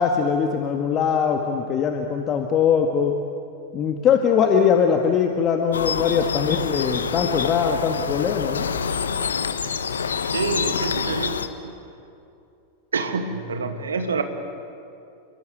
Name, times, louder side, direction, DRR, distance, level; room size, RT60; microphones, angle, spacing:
voice 1, 0.0-3.1 3.7-8.7, left 7 dB, 30° left, 4 dB, 1.9 m, -21 dB
sound 1, 5.7-11.5, left 6 dB, 70° left, 1.3 m, -27 dB
voice 2, 10.2-11.4 11.6-11.8 12.9-14.2, right 4 dB, 70° right, 7 dB, 2.3 m, -27 dB
28.5 x 22.5 x 9.2 m, 2.6 s
figure-of-eight pair, 90°, 0 cm